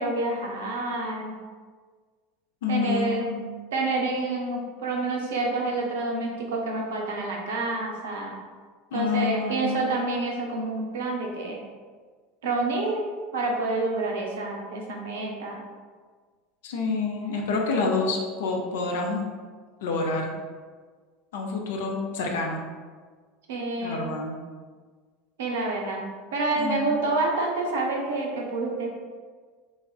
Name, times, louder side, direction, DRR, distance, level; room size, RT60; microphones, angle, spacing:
voice 1, 0.0-1.4 2.7-3.3 3.7-8.4 8.9-11.6 12.4-13.0 13.3-15.6 23.5-24.1 25.4-26.0 26.3-28.9, right 2 dB, 65° right, 0 dB, 0.5 m, -28 dB
voice 2, 2.6-3.3 8.9-9.7 16.6-19.2 19.8-20.3 21.3-22.6 23.8-24.4 26.6-26.9, left 4 dB, 60° left, 0 dB, 0.4 m, -28 dB
3.3 x 2.3 x 2.3 m, 1.5 s
figure-of-eight pair, 75°, 0 cm